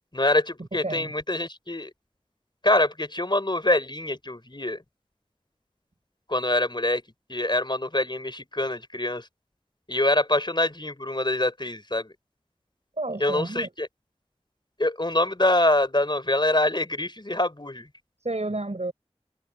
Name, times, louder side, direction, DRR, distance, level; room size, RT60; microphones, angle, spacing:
voice 1, 0.1-1.9 2.6-4.8 6.3-7.0 7.3-9.2 9.9-12.1 13.2-13.9 14.8-17.9, left 1 dB, 40° left, 4.2 m, -25 dB
voice 2, 0.7-1.1 13.0-13.7 18.2-18.9, right 2 dB, 70° right, 5.6 m, -31 dB
wide cardioid pair, 45°, 12 cm